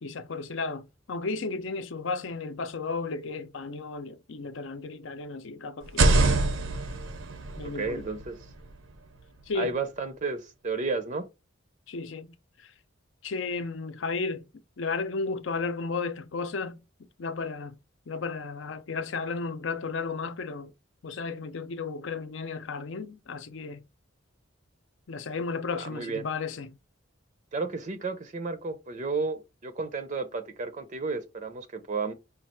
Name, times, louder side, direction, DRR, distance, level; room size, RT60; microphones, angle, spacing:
voice 1, 0.0-6.1 7.6-8.1 9.5-9.7 11.9-12.7 13.2-14.5 14.8-16.8 17.2-17.8 18.1-20.7 21.0-23.8 25.1-26.8, left 4 dB, 70° left, 0.6 m, -34 dB
sound 1, 5.8-9.7, right 2 dB, 85° right, 0.8 m, -27 dB
voice 2, 7.7-8.4 9.6-11.3 25.9-26.3 27.5-32.1, right 4 dB, 40° right, 0.5 m, -32 dB
5.2 x 2.3 x 4.3 m
head